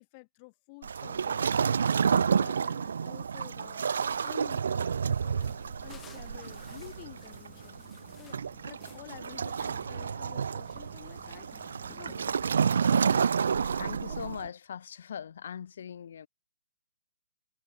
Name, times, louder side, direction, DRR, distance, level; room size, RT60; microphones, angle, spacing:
voice 1, 0.0-12.2 12.9-14.2, left 29 dB, 30° left, 2.1 m, -51 dB
Waves surf, 0.8-14.5, right 6 dB, 65° right, 0.4 m, -30 dB
sound 1, 5.4-12.9, left 8 dB, 15° left, 2.1 m, -56 dB
voice 2, 13.8-16.3, left 8 dB, 55° left, 5.0 m, -40 dB
figure-of-eight pair, 130°, 0 cm